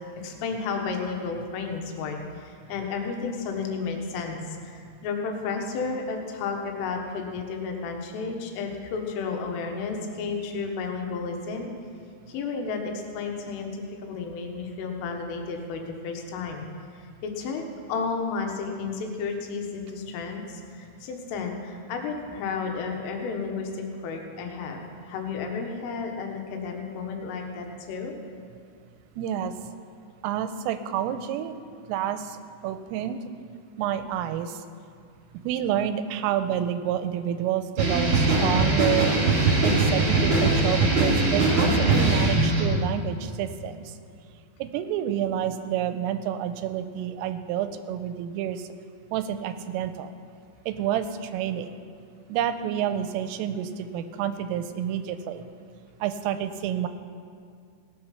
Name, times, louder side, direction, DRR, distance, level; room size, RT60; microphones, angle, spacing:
voice 1, 0.2-11.7 12.3-16.7 16.9-17.6 17.9-24.8 25.1-28.1, left 4 dB, 80° left, 2 dB, 3.8 m, -32 dB
voice 2, 29.2-29.5 30.2-31.6 31.9-33.2 33.8-34.6 35.4-39.1 39.6-43.9 44.6-48.7 49.1-50.1 50.7-51.7 52.3-55.4 56.0-56.9, right 10 dB, 85° right, 10 dB, 3.2 m, -29 dB
sound 1, 37.8-42.8, right 2 dB, 40° right, 2.2 m, -21 dB
17.5 x 8.3 x 5.8 m, 2.2 s
omnidirectional pair, 5.8 m